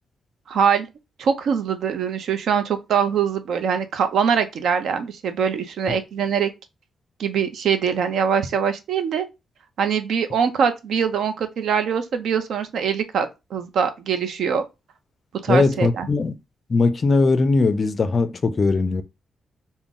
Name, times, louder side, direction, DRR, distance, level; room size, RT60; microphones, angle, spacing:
voice 1, 0.5-0.9 1.2-6.5 7.2-9.3 9.8-14.6 15.4-16.1, right 7 dB, 75° right, 0.6 m, -23 dB
voice 2, 15.5-16.3 16.7-19.0, left 3 dB, 35° left, 0.4 m, -19 dB
3.8 x 2.1 x 3.6 m
cardioid pair, 130°, 0 cm